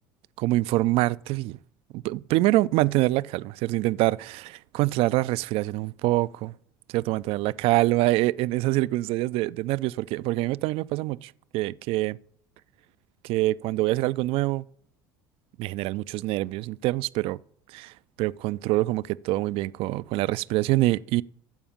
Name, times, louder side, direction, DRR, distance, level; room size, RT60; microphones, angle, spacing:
voice 1, 0.4-1.6 1.9-6.5 6.9-12.2 13.2-14.6 15.6-17.4 17.7-21.2, right 18 dB, 60° right, 0.4 m, -25 dB
14.5 x 5.0 x 7.2 m
hypercardioid pair, 75°, 11 cm